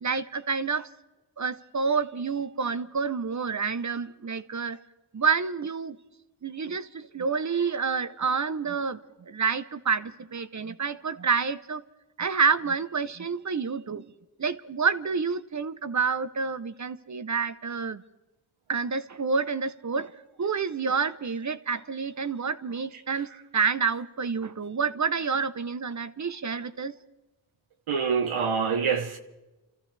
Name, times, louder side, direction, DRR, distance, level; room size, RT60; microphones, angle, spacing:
voice 1, 0.0-0.9 1.4-4.8 5.1-6.0 6.4-11.8 12.2-14.1 14.4-18.0 18.7-20.1 20.4-23.3 23.5-26.9, right 5 dB, 35° right, 0.6 m, -28 dB
voice 2, 27.9-29.2, right 6 dB, 80° right, 0.9 m, -25 dB
29.0 x 14.0 x 3.3 m
cardioid pair, 60°, 49 cm